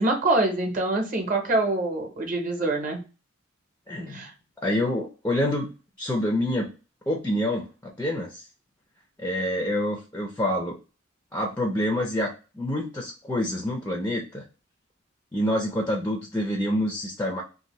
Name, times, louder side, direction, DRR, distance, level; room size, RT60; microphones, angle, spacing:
voice 1, 0.0-3.0 4.1-4.3, right 2 dB, 40° right, 3 dB, 0.7 m, -25 dB
voice 2, 3.9-4.2 4.6-5.7 6.0-6.7 7.1-8.4 9.2-10.8 11.3-14.4 15.3-17.4, left 1 dB, 10° left, 0 dB, 0.4 m, -27 dB
2.6 x 2.5 x 2.9 m, 0.33 s
head